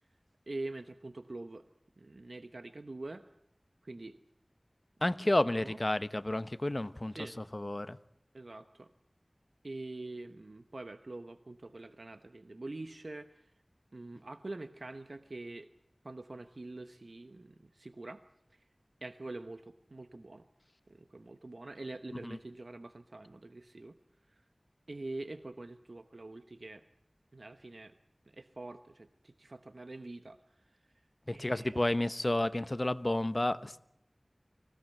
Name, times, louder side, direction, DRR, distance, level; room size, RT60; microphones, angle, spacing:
voice 1, 0.5-1.6 2.0-3.3 3.8-4.1 5.3-5.8 7.1-7.4 8.3-8.9 9.6-13.4 13.9-15.7 16.0-18.2 19.0-20.4 20.9-24.0 24.9-26.8 27.3-27.9 28.3-30.4 31.3-31.8, right 2 dB, 80° right, 10 dB, 1.0 m, -45 dB
voice 2, 5.0-7.1 7.5-8.0 22.2-22.4 31.3-33.8, left 1 dB, 40° left, 13 dB, 1.0 m, -31 dB
24.5 x 17.0 x 9.2 m, 0.78 s
wide cardioid pair, 50°, 0 cm